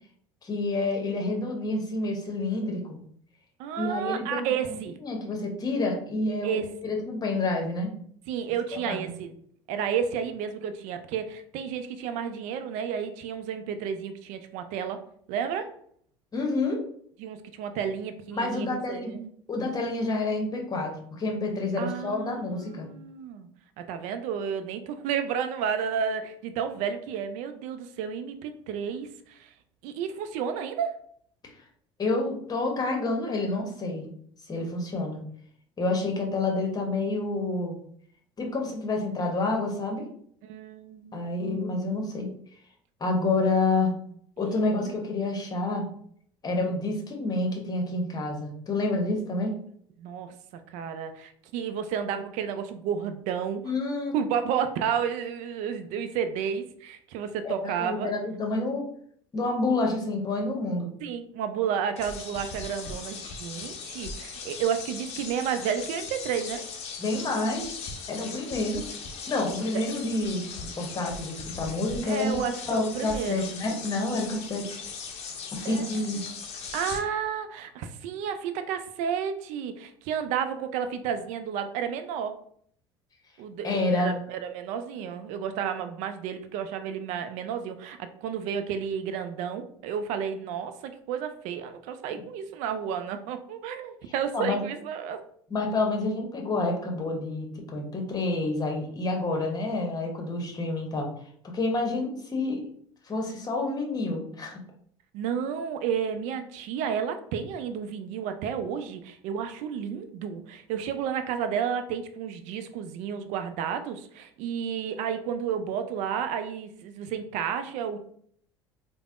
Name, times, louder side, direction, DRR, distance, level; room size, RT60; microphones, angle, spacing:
voice 1, 0.4-3.0 3.8-4.5 5.0-7.9 8.9-9.1 16.3-16.8 18.3-19.1 19.5-22.9 31.4-31.5 32.0-34.1 34.5-35.2 35.8-37.8 38.4-40.1 41.1-42.3 43.0-43.9 44.4-45.9 46.4-49.5 53.6-54.1 57.4-58.8 59.3-60.9 67.0-67.7 68.1-68.8 69.3-70.4 70.8-74.6 75.5-76.2 83.6-84.1 94.3-94.6 95.5-101.1 101.4-102.6 103.0-104.6, left 2 dB, 25° left, 1 dB, 0.9 m, -28 dB
voice 2, 3.6-5.0 6.4-6.9 8.3-9.3 9.7-15.0 15.3-15.7 17.2-19.3 21.8-23.5 23.8-29.5 29.8-31.0 40.4-41.2 44.6-45.0 46.4-46.7 50.0-53.6 54.1-58.1 61.0-66.6 69.7-69.8 72.1-73.5 75.6-75.9 76.1-76.2 76.7-82.3 83.4-95.2 105.1-118.0, right 8 dB, 55° right, 9 dB, 0.4 m, -31 dB
sound 1, 62.0-77.0, left 5 dB, 45° left, 0.6 m, -39 dB
3.2 x 2.1 x 2.4 m, 0.62 s
hypercardioid pair, 65°, 14 cm